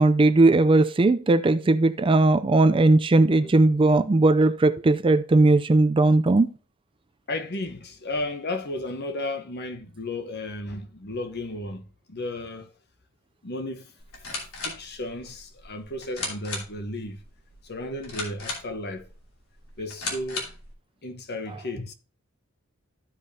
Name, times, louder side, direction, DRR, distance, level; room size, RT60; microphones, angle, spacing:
voice 1, 0.0-6.5, right 2 dB, 25° right, 0.4 m, -18 dB
voice 2, 7.3-12.7 13.4-13.9 14.3-14.4 14.6-17.2 17.6-19.1 19.8-20.5 21.0-21.9, left 2 dB, 50° left, 1.1 m, -34 dB
sound 1, 14.0-20.7, left 3 dB, 80° left, 2.8 m, -37 dB
14.5 x 5.2 x 2.7 m
head